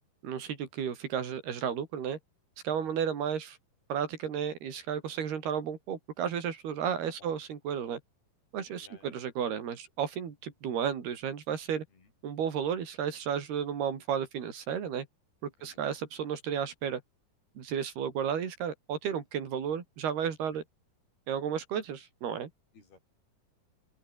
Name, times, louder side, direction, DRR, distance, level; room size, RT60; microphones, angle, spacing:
voice 1, 0.2-2.2 2.6-3.6 3.9-8.0 8.5-11.9 12.2-15.1 15.4-17.0 17.6-20.6 21.3-22.5, right 8 dB, 85° right, 5.3 m, -33 dB
voice 2, 8.8-9.2 11.9-12.1 15.6-15.8 22.7-23.0, left 4 dB, 80° left, 10.0 m, -57 dB
open air
omnidirectional pair, 4.4 m